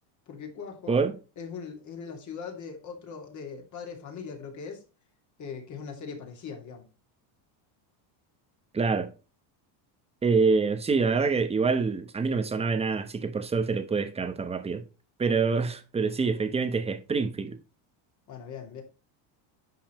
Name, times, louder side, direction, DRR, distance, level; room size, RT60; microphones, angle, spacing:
voice 1, 0.3-1.0 1.4-4.8 5.4-6.9 18.3-18.8, left 6 dB, 35° left, 2.6 m, -40 dB
voice 2, 8.7-9.1 10.2-14.8 15.2-17.6, right 4 dB, 10° right, 1.0 m, -26 dB
10.5 x 5.7 x 3.1 m
cardioid pair, 155°, 48 cm